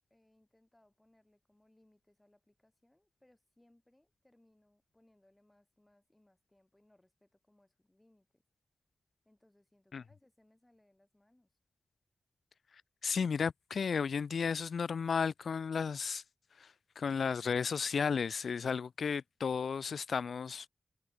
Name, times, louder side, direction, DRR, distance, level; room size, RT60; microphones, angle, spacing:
voice 1, 0.0-8.4 9.2-11.5, left 1 dB, 15° left, 4.2 m, -70 dB
voice 2, 13.0-16.2 16.6-20.7, left 6 dB, 85° left, 0.3 m, -33 dB
wide cardioid pair, 135°, 0 cm